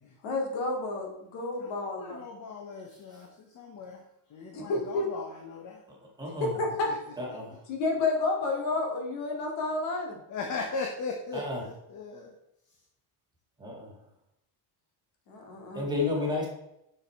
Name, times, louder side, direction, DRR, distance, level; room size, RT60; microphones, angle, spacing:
voice 1, 0.2-2.2 4.5-5.1 6.4-6.9 7.7-10.2 15.3-15.9, left 3 dB, 80° left, 1 dB, 2.5 m, -30 dB
voice 2, 1.6-4.0 4.3-5.8 6.9-7.0 10.3-12.3 16.2-16.3, left 4 dB, 40° left, 2 dB, 1.1 m, -38 dB
voice 3, 6.2-6.5 7.2-7.5 11.3-11.6 13.6-13.9 15.7-16.5, left 3 dB, 10° right, -4 dB, 2.2 m, -31 dB
6.7 x 6.6 x 4.5 m, 0.83 s
cardioid pair, 160°, 45 cm